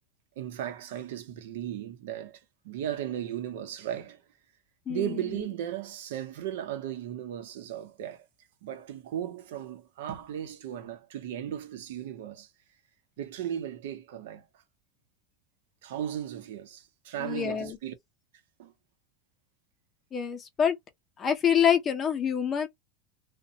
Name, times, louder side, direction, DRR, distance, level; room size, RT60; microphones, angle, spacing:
voice 1, 0.4-4.2 4.9-8.2 8.6-12.5 13.2-14.5 15.8-17.9 18.6-18.7, right 10 dB, 85° right, 0.7 m, -36 dB
voice 2, 17.2-17.8 20.1-20.8 21.2-22.7, left 8 dB, 20° left, 0.5 m, -26 dB
2.5 x 2.1 x 2.7 m
supercardioid pair, 170°, 0 cm